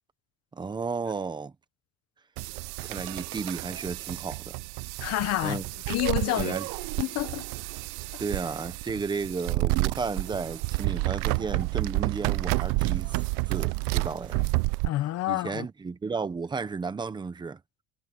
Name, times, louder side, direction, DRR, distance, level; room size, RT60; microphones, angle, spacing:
voice 1, 0.5-1.5 2.8-4.6 5.4-5.6 6.4-6.7 8.2-13.2 13.5-14.4 15.3-17.6, right 4 dB, 15° right, 0.9 m, -33 dB
sound 1, 2.4-14.9, right 24 dB, 85° right, 0.6 m, -30 dB
voice 2, 5.0-5.6 5.9-6.5 7.0-7.4 14.8-15.7, left 16 dB, 50° left, 1.0 m, -28 dB
cardioid pair, 175°, 32 cm